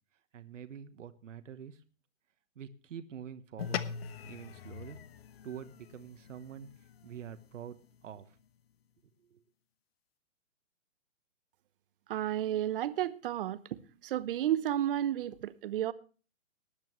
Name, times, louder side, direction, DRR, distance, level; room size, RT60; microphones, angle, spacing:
voice 1, 0.3-1.8 2.5-3.8 4.2-5.0 5.4-6.7 7.0-8.4 9.2-9.4, right 8 dB, 65° right, 1.3 m, -46 dB
sound 1, 3.6-8.2, left 8 dB, 50° left, 1.2 m, -42 dB
voice 2, 12.1-13.6 14.0-15.9, right 12 dB, 40° right, 1.0 m, -32 dB
19.0 x 10.5 x 3.1 m
hypercardioid pair, 140°, 40 cm